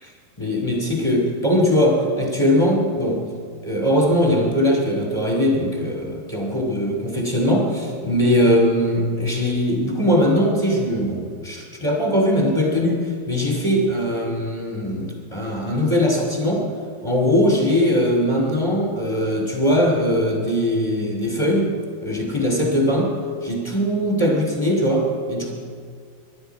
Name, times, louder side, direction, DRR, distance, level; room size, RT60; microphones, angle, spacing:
voice 1, 0.4-3.2 3.6-16.7 17.0-21.7 22.0-23.1 23.4-25.5, equal, 15° left, -1 dB, 0.9 m, -20 dB
25.5 x 12.0 x 4.6 m, 2.1 s
omnidirectional pair, 4.6 m